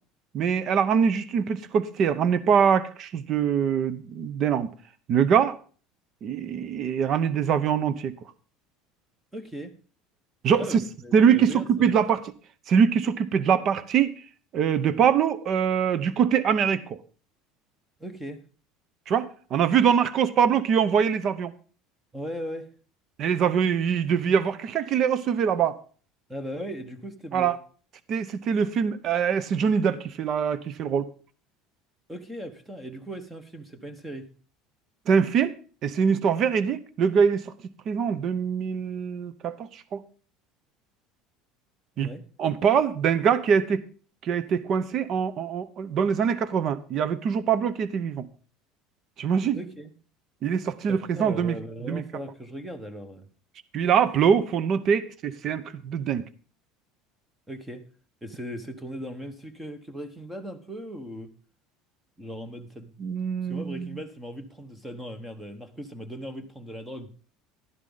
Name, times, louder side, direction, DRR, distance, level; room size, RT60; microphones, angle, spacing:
voice 1, 0.3-4.7 5.1-5.6 6.2-8.1 10.4-10.8 11.1-12.2 12.7-14.2 14.5-17.0 19.1-21.5 23.2-25.8 27.3-27.6 28.1-31.1 35.1-35.5 35.8-37.5 37.9-40.0 42.0-42.1 42.4-43.8 44.2-48.3 49.2-49.6 50.4-51.6 51.9-52.0 53.7-56.3 63.0-64.0, right 7 dB, 40° right, 0.8 m, -23 dB
voice 2, 9.3-9.7 10.6-11.9 18.0-18.4 22.1-22.7 26.3-27.5 32.1-34.3 42.0-42.2 49.5-49.9 50.9-53.3 57.5-57.8 58.2-61.3 62.2-62.9 63.4-67.1, equal, 5° right, 1.2 m, -38 dB
12.0 x 11.0 x 4.0 m
cardioid pair, 150°, 0 cm